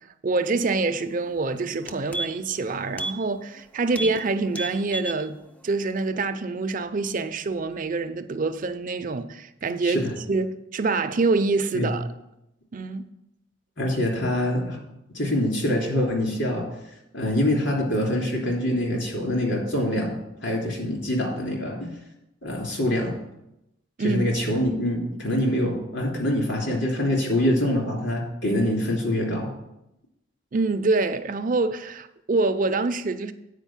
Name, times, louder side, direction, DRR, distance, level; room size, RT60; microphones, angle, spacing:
voice 1, 0.2-10.0 10.3-12.1 12.7-13.0 24.0-24.3 24.5-24.6 30.5-33.3, right 3 dB, 45° right, 0.5 m, -26 dB
sound 1, 1.3-1.4 1.7-2.6 2.9-3.2 3.5-3.6 3.9-4.2 4.5-5.2 5.6-5.7, right 2 dB, 10° left, 0.4 m, -32 dB
voice 2, 13.8-14.8 15.1-16.7 17.1-21.9 22.4-23.2 24.0-29.5, left 1 dB, 65° left, 3.1 m, -25 dB
9.0 x 4.9 x 7.2 m
head